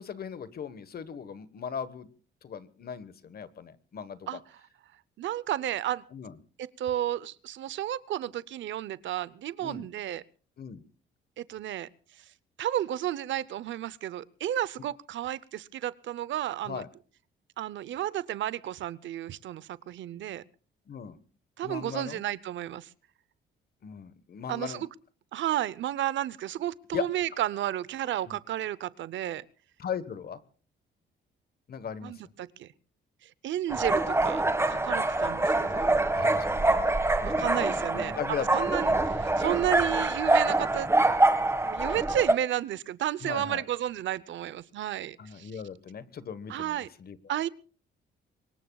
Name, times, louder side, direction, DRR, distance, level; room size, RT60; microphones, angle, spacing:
voice 1, 0.0-2.1 2.4-4.3 6.1-6.4 9.6-9.9 10.6-10.8 16.6-16.9 20.9-21.2 21.6-22.2 23.8-24.8 26.9-27.1 28.3-28.4 29.8-30.4 31.7-32.1 36.1-36.9 37.3-37.5 37.9-39.1 43.2-43.6 45.2-47.2, left 7 dB, 50° left, 14 dB, 1.3 m, -38 dB
voice 2, 5.2-6.0 6.6-10.2 11.4-11.9 12.2-12.3 12.6-16.8 17.6-20.4 21.6-22.9 24.5-24.9 25.3-29.4 32.0-32.7 33.2-35.9 37.2-40.9 41.6-45.5 46.5-46.9 47.3-47.5, right 12 dB, 70° right, 19 dB, 0.7 m, -32 dB
sound 1, 33.7-42.3, right 2 dB, 15° right, 1.6 m, -25 dB
24.5 x 21.5 x 2.3 m, 0.40 s
cardioid pair, 90°, 20 cm